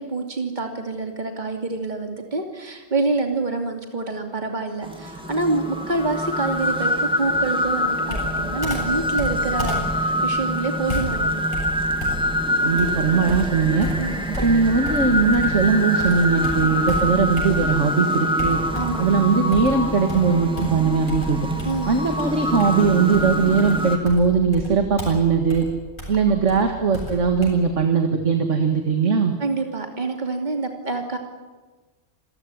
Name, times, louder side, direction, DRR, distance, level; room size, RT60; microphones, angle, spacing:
voice 1, 0.0-11.4 14.0-14.3 16.6-16.7 18.7-19.1 21.6-22.0 29.4-31.2, right 3 dB, 35° right, 3 dB, 2.9 m, -27 dB
sound 1, 4.8-24.0, equal, 5° right, 2.3 m, -25 dB
Computer keyboard, 8.1-15.7 16.0-17.9 18.4-19.1 19.5-27.5, equal, 40° left, 8.1 m, -32 dB
voice 2, 12.6-13.9 14.4-18.6 19.0-21.5 21.9-25.7 26.1-29.3, right 5 dB, 70° right, 5 dB, 2.2 m, -20 dB
27.0 x 15.5 x 9.8 m, 1.3 s
omnidirectional pair, 1.3 m